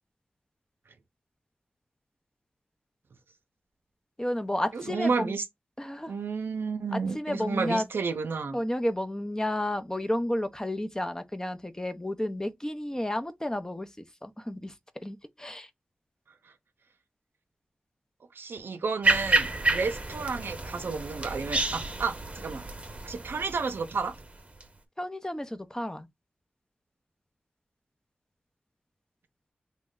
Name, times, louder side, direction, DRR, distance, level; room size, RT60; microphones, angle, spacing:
voice 1, 4.2-5.4 5.8-6.1 6.9-7.8 8.5-13.9 14.2-14.7 15.0-15.7 25.0-26.1, left 1 dB, 15° left, 0.6 m, -31 dB
voice 2, 4.7-5.4 6.1-8.6 18.3-22.6 23.0-24.2, right 4 dB, 85° right, 0.5 m, -31 dB
sound 1, 19.0-24.6, right 2 dB, 35° right, 0.8 m, -29 dB
3.1 x 2.1 x 3.6 m
cardioid pair, 45°, 4 cm